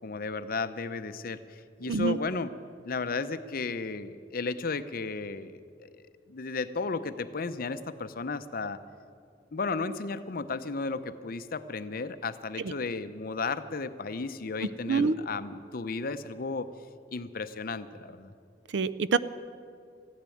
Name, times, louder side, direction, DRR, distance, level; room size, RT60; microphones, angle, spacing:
voice 1, 0.0-1.4 1.8-2.5 2.8-5.9 6.3-8.8 9.5-16.7 17.1-18.3, left 4 dB, 55° left, 12 dB, 0.7 m, -34 dB
voice 2, 18.7-19.2, right 4 dB, 80° right, 16 dB, 0.5 m, -25 dB
15.0 x 10.5 x 9.1 m, 2.3 s
head